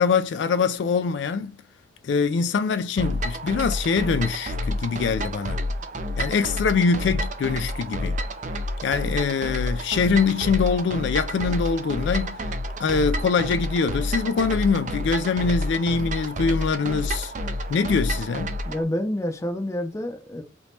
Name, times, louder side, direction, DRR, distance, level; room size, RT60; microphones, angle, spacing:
voice 1, 0.0-1.5 2.0-5.6 6.2-8.2 8.8-12.4 12.8-17.3 17.7-18.5, left 5 dB, 70° left, 0.3 m, -23 dB
sound 1, 3.0-18.8, equal, 40° right, 0.5 m, -29 dB
voice 2, 18.7-20.4, left 1 dB, 15° left, 0.5 m, -28 dB
3.4 x 2.9 x 2.7 m
head